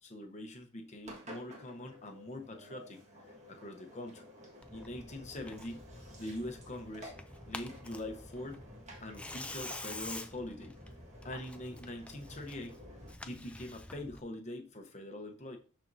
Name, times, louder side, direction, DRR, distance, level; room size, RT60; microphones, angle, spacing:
voice 1, 0.0-4.2 4.7-5.9 6.2-7.1 7.4-8.6 9.0-10.8 11.2-12.8 13.3-15.6, left 1 dB, 35° left, 4 dB, 0.9 m, -43 dB
Engine, 1.0-13.1, equal, 35° right, 1.6 m, -53 dB
Tearing, 4.6-14.2, left 2 dB, 5° left, 0.3 m, -48 dB
12.0 x 4.4 x 2.7 m, 0.38 s
head